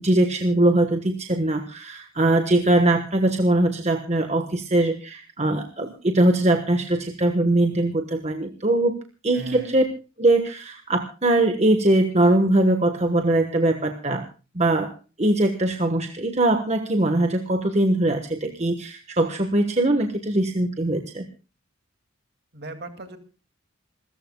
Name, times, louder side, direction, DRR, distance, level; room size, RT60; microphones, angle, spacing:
voice 1, 0.0-8.9 9.2-9.8 10.2-14.2 14.5-14.9 15.2-21.2, right 1 dB, 30° right, 6 dB, 1.2 m, -21 dB
voice 2, 9.3-9.8 22.5-23.2, right 2 dB, 50° right, 7 dB, 2.3 m, -37 dB
27.5 x 14.0 x 2.3 m, 0.34 s
head